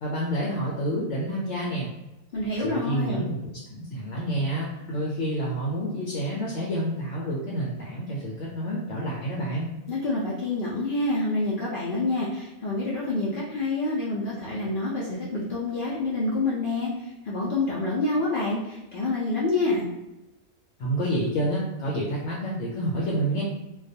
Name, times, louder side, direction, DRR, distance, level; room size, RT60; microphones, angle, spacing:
voice 1, 0.0-1.9 2.6-9.7 20.8-23.4, right 1 dB, 70° left, -4 dB, 0.9 m, -29 dB
voice 2, 2.3-3.3 9.9-19.9, left 2 dB, 90° left, -6 dB, 0.4 m, -27 dB
2.3 x 2.2 x 2.6 m, 1.0 s
omnidirectional pair, 1.5 m